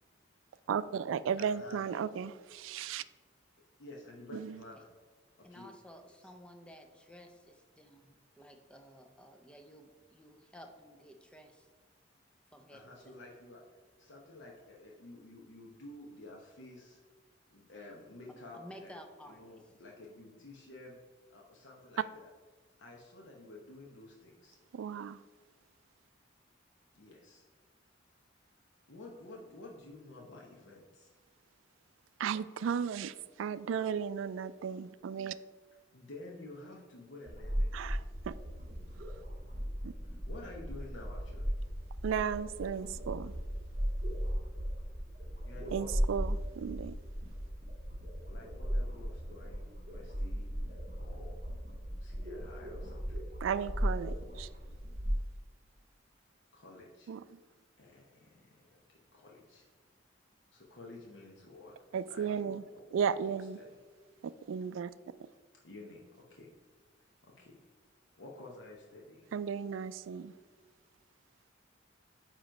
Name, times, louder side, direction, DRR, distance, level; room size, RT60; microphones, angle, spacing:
voice 1, 0.7-3.0 4.3-4.6 24.7-25.2 32.2-35.3 37.7-38.3 39.8-39.9 42.0-43.4 45.7-46.9 53.4-54.5 57.1-57.2 61.9-62.6 62.9-63.6 64.2-64.9 69.3-70.3, right 7 dB, 80° right, 16 dB, 0.3 m, -35 dB
voice 2, 1.4-2.0 3.8-4.9 5.5-5.7 6.2-6.3 12.7-13.6 14.0-17.0 17.5-21.0 21.3-22.3 22.8-24.6 26.9-27.4 28.9-31.1 35.9-37.9 40.0-41.6 45.4-45.9 48.3-51.3 52.0-53.3 56.5-57.1 57.8-59.7 60.5-61.7 62.1-63.7 65.6-66.0 66.3-66.5 67.2-67.6 68.2-69.3, left 2 dB, 70° left, -2 dB, 0.9 m, -51 dB
voice 3, 5.4-11.7 12.5-13.1 18.3-19.6, equal, 5° left, 4 dB, 0.6 m, -54 dB
sound 1, 37.2-55.2, equal, 35° right, 1.7 m, -37 dB
9.1 x 3.1 x 5.1 m, 1.5 s
head